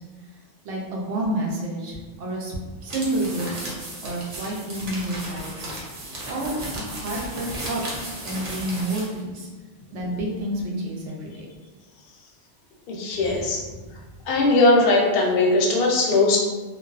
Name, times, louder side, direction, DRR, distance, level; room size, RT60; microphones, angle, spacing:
voice 1, 0.6-3.6 4.0-5.7 6.3-7.8 8.2-9.5 9.9-11.5 13.3-13.4 13.7-14.0, right 1 dB, 75° right, -2 dB, 0.9 m, -29 dB
sound 1, 2.8-9.2, right 1 dB, 45° right, 0.5 m, -35 dB
voice 2, 12.9-13.6 14.3-16.4, left 2 dB, 65° left, 0 dB, 0.7 m, -19 dB
2.4 x 2.2 x 2.3 m, 1.3 s
omnidirectional pair, 1.2 m